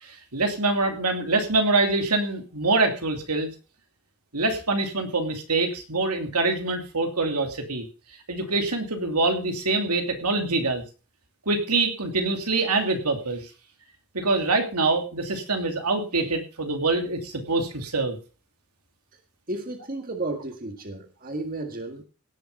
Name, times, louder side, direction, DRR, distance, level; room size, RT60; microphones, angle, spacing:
voice 1, 0.0-3.5 4.3-7.9 8.3-10.8 11.5-13.5 14.1-18.2, right 3 dB, 90° right, 5 dB, 2.9 m, -25 dB
voice 2, 19.5-22.0, right 2 dB, 40° right, 5 dB, 1.8 m, -33 dB
17.5 x 6.9 x 5.4 m, 0.36 s
head